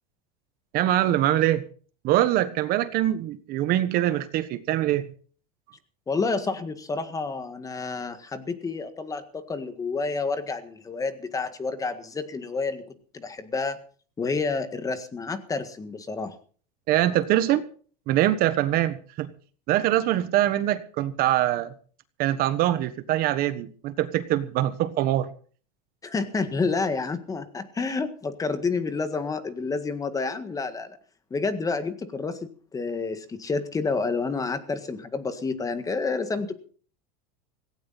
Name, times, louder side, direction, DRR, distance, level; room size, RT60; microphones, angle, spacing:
voice 1, 0.7-1.6 2.0-5.1 16.9-17.6 18.1-19.3 19.7-21.7 22.2-25.3, right 13 dB, 45° right, 12 dB, 1.3 m, -23 dB
voice 2, 6.1-13.8 14.2-16.4 26.0-31.0 31.3-36.6, left 4 dB, 15° left, 10 dB, 1.7 m, -29 dB
17.0 x 17.0 x 4.2 m, 0.42 s
supercardioid pair, 135°, 21 cm